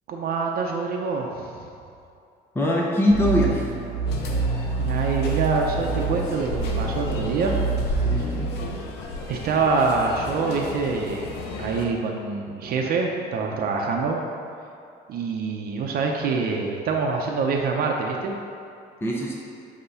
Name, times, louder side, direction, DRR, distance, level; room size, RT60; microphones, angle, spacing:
voice 1, 0.1-1.7 4.8-7.6 9.3-11.3 11.6-14.2 15.1-18.4, right 4 dB, 60° right, 1 dB, 0.7 m, -25 dB
voice 2, 2.5-3.7 8.1-8.5 19.0-19.5, equal, 15° left, -3 dB, 0.8 m, -22 dB
sound 1, 3.1-8.7, right 4 dB, 20° right, 0.8 m, -27 dB
sound 2, 4.1-11.9, left 3 dB, 85° left, 0.9 m, -33 dB
8.0 x 3.0 x 5.6 m, 2.6 s
cardioid pair, 110°, 17 cm